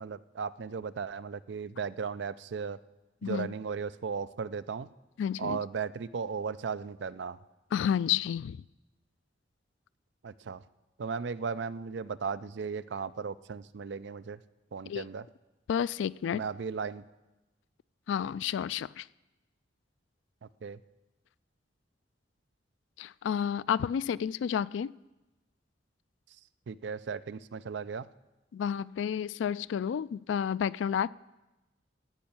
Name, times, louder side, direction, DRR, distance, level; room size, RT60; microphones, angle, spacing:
voice 1, 0.0-2.8 3.2-4.9 5.4-7.4 10.2-10.6 11.0-14.4 14.7-15.3 16.3-17.0 20.4-20.8 26.7-28.1, right 5 dB, 70° right, 15 dB, 0.4 m, -36 dB
voice 2, 5.2-5.6 7.7-8.6 14.9-15.0 15.7-16.4 18.1-19.1 23.0-24.9 28.5-31.1, left 8 dB, 90° left, 20 dB, 0.3 m, -30 dB
14.5 x 5.5 x 8.7 m, 1.0 s
head